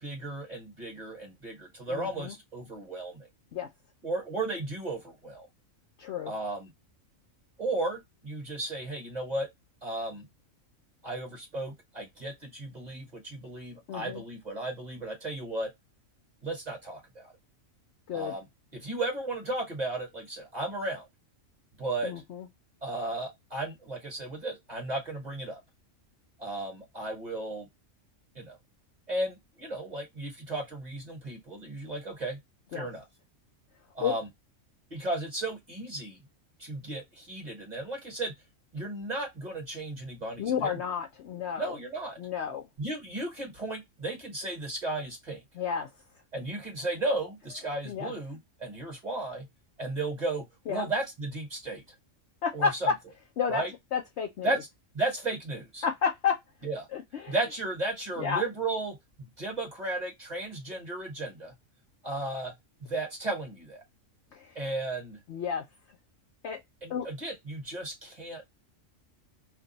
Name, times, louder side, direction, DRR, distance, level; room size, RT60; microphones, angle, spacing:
voice 1, 0.0-3.3 4.0-5.5 6.2-6.7 7.6-9.5 9.8-10.2 11.0-15.7 16.4-17.3 18.1-18.4 18.7-21.1 21.8-22.1 22.8-25.6 26.4-27.7 28.3-28.6 29.1-32.4 32.7-33.0 33.9-34.3 34.9-36.2 36.6-38.3 38.7-40.7 41.6-42.2 42.8-45.4 46.3-49.5 49.8-51.8 52.5-52.9 53.5-53.7 54.4-54.6 54.9-55.8 56.6-56.9 57.3-61.5 62.0-62.5 62.8-63.8 64.5-65.2 66.8-68.4, right 2 dB, 35° right, 1.1 m, -34 dB
voice 2, 1.9-2.4 3.5-3.7 6.0-6.3 13.9-14.2 18.1-18.3 22.0-22.5 32.7-32.9 34.0-34.2 40.4-41.8 42.2-42.6 45.5-45.9 47.8-48.1 50.7-50.9 52.4-52.9 53.4-53.6 53.9-54.6 55.8-56.4 56.9-57.3 58.2-58.4 64.3-64.6 65.3-65.6 66.4-66.6 66.9-67.1, left 7 dB, 65° left, 0.8 m, -31 dB
2.6 x 2.2 x 3.9 m
omnidirectional pair, 1.4 m